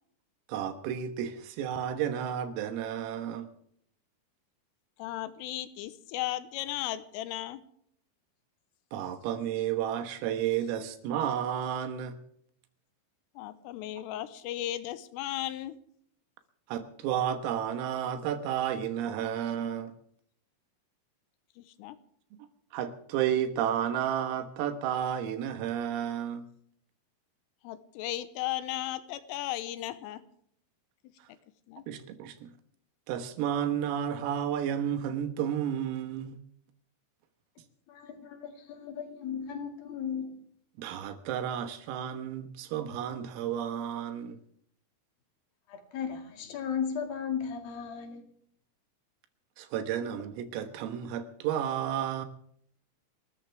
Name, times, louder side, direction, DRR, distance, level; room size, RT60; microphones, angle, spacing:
voice 1, 0.5-3.5 8.9-12.2 16.7-19.9 22.7-26.5 31.9-32.5 33.1-36.4 40.8-44.4 49.6-52.3, right 9 dB, 85° right, 8 dB, 4.0 m, -32 dB
voice 2, 5.0-7.6 13.4-15.8 21.6-22.0 27.6-30.2 31.7-31.8, left 14 dB, 85° left, 13 dB, 3.4 m, -36 dB
voice 3, 37.9-40.4 45.7-48.2, left 7 dB, 55° left, 5 dB, 3.4 m, -36 dB
30.0 x 14.0 x 3.5 m, 0.65 s
omnidirectional pair, 5.9 m